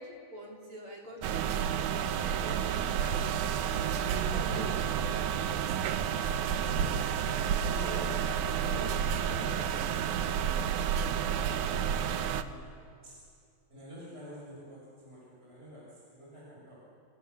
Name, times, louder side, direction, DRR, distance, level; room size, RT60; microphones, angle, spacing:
voice 1, 0.0-1.4 1.9-3.3 4.0-4.9 7.2-7.6 7.8-8.1, right 1 dB, 40° right, -2 dB, 5.1 m, -47 dB
sound 1, 1.2-12.4, right 8 dB, 75° right, 2.3 m, -30 dB
voice 2, 4.0-4.7 5.6-5.8 6.4-6.9 7.6-8.1 8.4-10.6 11.3-12.7 13.0-13.1 13.7-16.8, equal, 15° right, -6 dB, 7.3 m, -46 dB
28.5 x 28.0 x 7.1 m, 2.4 s
omnidirectional pair, 3.6 m